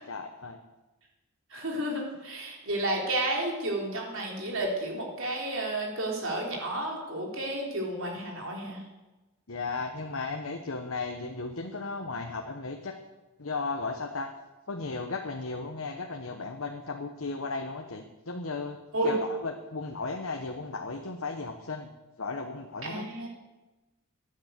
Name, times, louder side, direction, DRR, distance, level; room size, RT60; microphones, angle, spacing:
voice 1, 0.1-0.6 9.5-13.0 13.4-14.3 14.7-18.8 19.0-21.9 22.2-23.1, left 3 dB, 75° left, 3 dB, 1.1 m, -35 dB
voice 2, 1.5-8.8 18.9-19.1 22.8-23.3, right 1 dB, 65° right, 0 dB, 3.7 m, -31 dB
13.5 x 9.9 x 8.2 m, 1.1 s
head